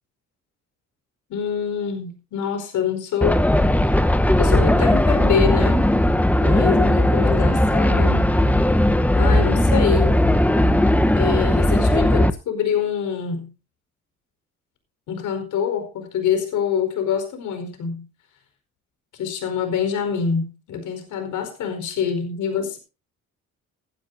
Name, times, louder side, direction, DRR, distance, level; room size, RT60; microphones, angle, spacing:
voice 1, 1.3-3.4 3.8-4.0 4.4-5.9 6.4-8.3 9.2-10.2 11.1-13.4 15.1-18.1 19.1-22.8, left 7 dB, 80° left, 4.9 m, -25 dB
sound 1, 3.2-12.3, left 1 dB, 5° left, 1.0 m, -17 dB
18.0 x 12.0 x 2.7 m
cardioid pair, 90°, 30 cm